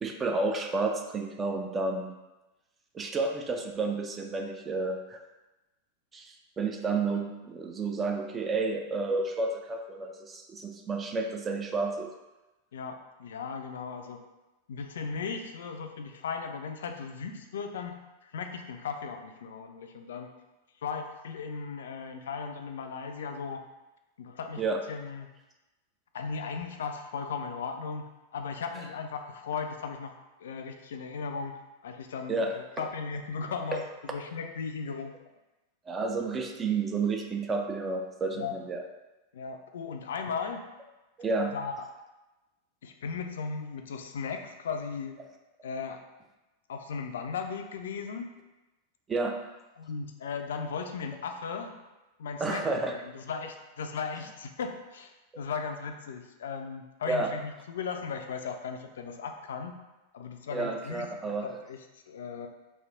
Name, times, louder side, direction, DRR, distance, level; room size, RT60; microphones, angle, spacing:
voice 1, 0.0-2.1 2.9-5.2 6.1-12.1 24.6-24.8 32.3-32.9 33.7-33.8 35.9-38.8 41.2-41.5 49.1-49.4 52.4-52.9 57.1-57.3 60.5-61.5, right 3 dB, 20° right, 3 dB, 0.4 m, -31 dB
voice 2, 12.7-14.2 14.7-20.3 20.8-23.6 24.2-24.6 24.9-25.3 26.1-30.1 30.4-35.1 38.3-38.5 39.3-40.6 41.5-41.9 42.8-45.2 45.6-46.0 46.7-48.3 49.8-51.7 52.2-59.7 60.1-61.1 61.4-62.5, left 5 dB, 60° left, 5 dB, 0.3 m, -37 dB
3.2 x 2.5 x 3.6 m, 1.1 s
figure-of-eight pair, 90°, 0 cm